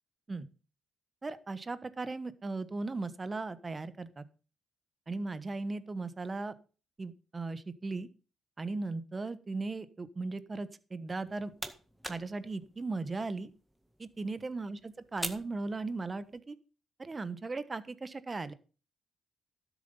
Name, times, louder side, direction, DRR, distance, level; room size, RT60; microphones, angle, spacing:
voice 1, 1.2-4.2 5.1-6.5 7.0-8.1 8.6-11.5 12.1-13.5 14.0-16.6 17.0-18.5, right 3 dB, 25° right, 13 dB, 1.2 m, -37 dB
sound 1, 11.1-16.4, right 1 dB, 5° right, 1.8 m, -46 dB
12.5 x 7.4 x 5.5 m, 0.36 s
cardioid pair, 90°, 0 cm